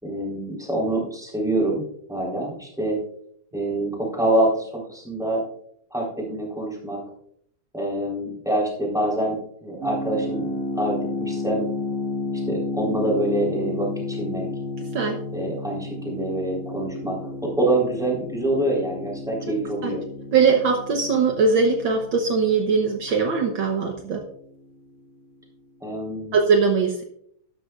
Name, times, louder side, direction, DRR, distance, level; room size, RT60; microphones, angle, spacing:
voice 1, 0.0-3.0 3.5-5.4 5.9-7.0 7.7-9.4 9.6-11.7 12.5-14.5 15.3-20.0 25.8-26.4, right 1 dB, ahead, -3 dB, 3.8 m, -26 dB
sound 1, 9.8-24.6, left 2 dB, 35° right, 2.1 m, -32 dB
voice 2, 14.8-15.2 19.8-19.9 20.3-24.2 26.3-27.0, right 5 dB, 65° right, 3 dB, 1.7 m, -21 dB
12.5 x 12.5 x 2.5 m, 0.68 s
omnidirectional pair, 2.4 m